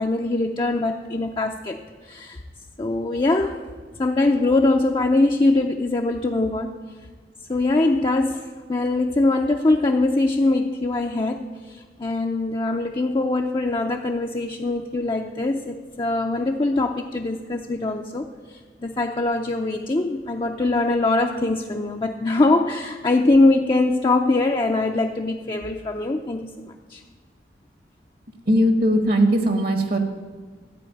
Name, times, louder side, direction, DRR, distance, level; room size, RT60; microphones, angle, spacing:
voice 1, 0.0-1.8 2.0-2.4 2.8-3.6 4.0-6.7 7.5-27.0, left 2 dB, 25° left, 2 dB, 0.5 m, -22 dB
voice 2, 28.4-30.0, equal, 60° right, 6 dB, 1.3 m, -19 dB
14.0 x 4.8 x 9.1 m, 1.4 s
head